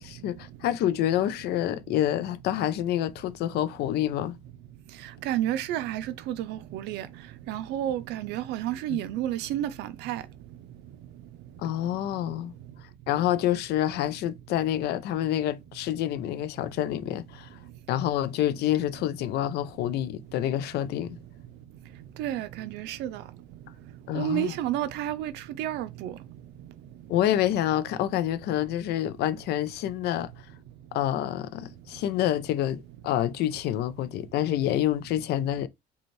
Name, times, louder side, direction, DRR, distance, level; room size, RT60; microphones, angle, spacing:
voice 1, 0.0-4.4 8.9-9.0 11.6-12.5 13.1-17.6 17.9-21.2 24.1-24.5 27.1-30.3 30.9-35.7, left 12 dB, 75° left, 0.4 m, -27 dB
voice 2, 5.3-7.1 7.5-10.2 22.2-23.2 24.1-25.3 25.6-26.1, right 12 dB, 85° right, 0.4 m, -30 dB
5.1 x 2.3 x 3.1 m
cardioid pair, 110°, 17 cm